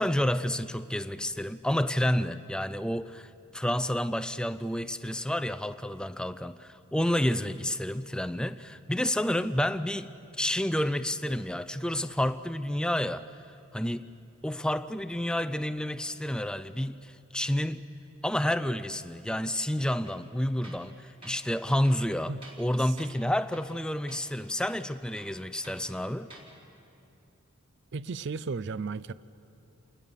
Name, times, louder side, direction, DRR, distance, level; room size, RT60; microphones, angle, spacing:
voice 1, 0.0-13.3 13.7-14.1 14.4-17.8 18.2-22.3 22.6-26.3, left 1 dB, 5° left, 0.5 m, -30 dB
Tools, 20.0-20.3 20.6-20.9 21.2-21.4 21.8-22.7 23.0-23.2 23.5-23.8 24.1-24.2 24.6-25.8 26.2-26.5, right 2 dB, 25° right, 3.7 m, -51 dB
voice 2, 27.9-29.1, right 4 dB, 55° right, 0.4 m, -34 dB
28.5 x 20.5 x 6.9 m
head